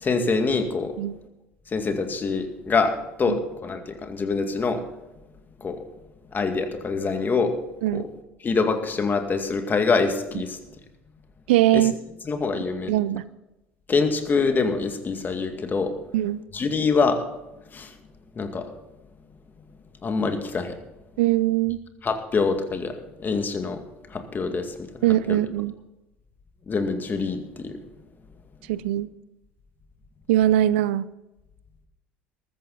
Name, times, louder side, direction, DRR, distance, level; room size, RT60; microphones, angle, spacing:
voice 1, 0.0-0.9 1.7-4.8 5.6-5.8 6.3-7.5 7.9-8.0 8.4-10.6 11.7-11.8 12.3-12.9 13.9-15.9 16.5-17.2 17.7-17.9 18.4-18.7 20.0-20.7 22.0-22.9 23.2-23.8 24.1-24.7 25.3-25.4 26.7-27.8, left 4 dB, 30° left, 2.1 m, -25 dB
voice 2, 11.5-11.9 12.9-13.2 16.1-16.4 21.2-21.8 25.0-25.7 28.7-29.1 30.3-31.1, right 14 dB, 75° right, 0.5 m, -21 dB
14.5 x 13.5 x 4.1 m
hypercardioid pair, 70°, 6 cm